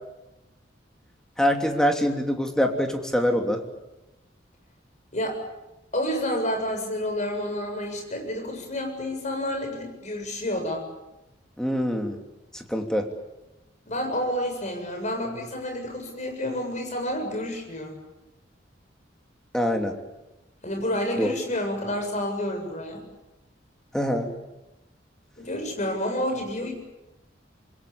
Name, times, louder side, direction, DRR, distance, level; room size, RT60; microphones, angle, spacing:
voice 1, 1.4-3.6 11.6-12.2 12.5-13.0 19.5-19.9 21.2-21.3 23.9-24.3, equal, 5° left, 3 dB, 3.0 m, -24 dB
voice 2, 5.9-10.8 13.9-18.0 20.6-23.0 25.4-26.7, left 1 dB, 40° left, 4 dB, 7.5 m, -29 dB
26.5 x 22.0 x 8.7 m, 0.99 s
head